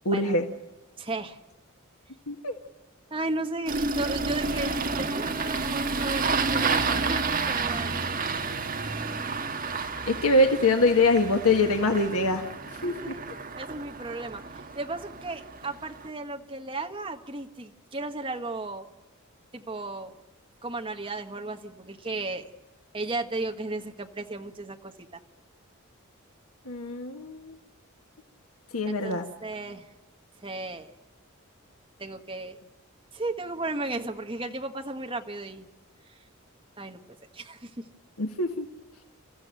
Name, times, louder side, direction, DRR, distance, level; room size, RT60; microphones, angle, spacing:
voice 1, 0.0-0.4 2.3-2.5 10.1-12.4 12.8-12.9 26.7-27.6 28.7-29.2 38.2-38.7, left 2 dB, 85° left, 4 dB, 1.6 m, -23 dB
voice 2, 1.0-1.4 3.1-8.1 12.8-13.2 13.5-18.9 19.5-20.1 20.6-22.5 22.9-25.2 28.9-29.9 30.4-30.9 32.0-32.6 33.1-35.7 36.1-36.2 36.8-37.9, right 2 dB, 25° right, 4 dB, 1.5 m, -35 dB
Engine starting, 3.7-16.1, right 4 dB, 40° right, 1.6 m, -30 dB
29.0 x 15.0 x 9.0 m, 1.1 s
head